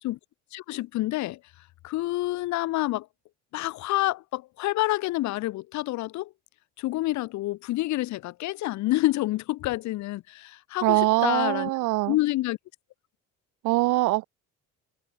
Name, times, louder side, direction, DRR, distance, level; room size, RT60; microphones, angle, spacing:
voice 1, 0.5-1.4 1.8-3.1 3.5-6.3 6.8-11.7 12.1-12.6, left 17 dB, 65° left, 1.9 m, -28 dB
voice 2, 10.8-12.2 13.6-14.2, right 20 dB, 75° right, 3.3 m, -23 dB
cardioid pair, 150°, 31 cm